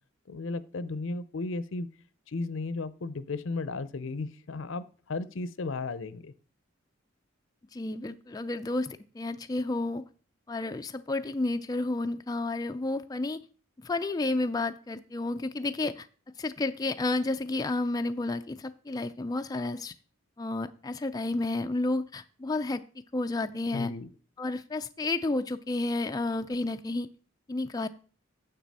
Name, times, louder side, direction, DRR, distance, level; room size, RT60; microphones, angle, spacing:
voice 1, 0.3-1.9 2.3-6.3 23.7-24.1, left 3 dB, 60° left, 16 dB, 0.6 m, -35 dB
voice 2, 7.7-10.0 10.5-13.4 13.8-16.1 16.4-19.9 20.4-22.8 23.1-23.9 24.4-27.1 27.5-27.9, left 2 dB, 20° left, 8 dB, 0.3 m, -31 dB
9.3 x 6.8 x 4.1 m, 0.40 s
head